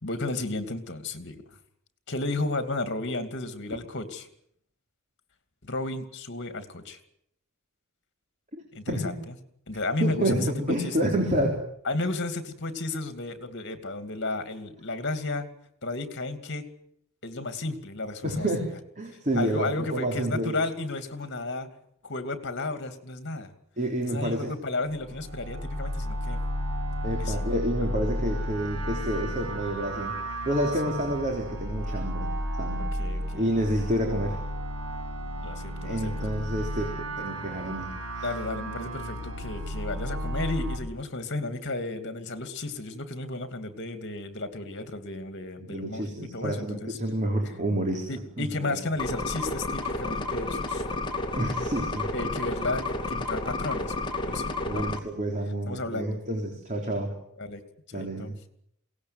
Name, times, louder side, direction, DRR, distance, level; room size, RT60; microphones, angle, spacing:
voice 1, 0.0-1.4 2.1-4.3 5.6-7.0 8.7-9.3 9.7-11.0 11.8-15.5 15.8-16.7 17.2-18.5 19.3-21.7 22.0-23.5 24.0-26.4 27.2-27.4 33.0-33.5 35.4-36.3 38.2-47.0 48.1-50.8 52.1-53.9 54.3-55.0 55.7-56.2 57.4-57.6 57.9-58.4, left 2 dB, 55° left, 9 dB, 2.7 m, -33 dB
voice 2, 10.0-11.6 18.2-18.7 19.0-20.6 23.8-24.5 27.0-30.2 30.5-32.3 32.6-32.8 33.3-34.4 35.8-38.3 45.6-48.1 48.4-48.8 51.3-52.3 54.7-57.1 57.9-58.3, right 1 dB, 35° right, 2 dB, 3.7 m, -29 dB
sound 1, 24.9-40.8, equal, 90° right, 7.0 m, -33 dB
sound 2, 49.0-55.0, left 2 dB, 20° left, 2.6 m, -31 dB
22.5 x 18.0 x 9.5 m, 0.71 s
head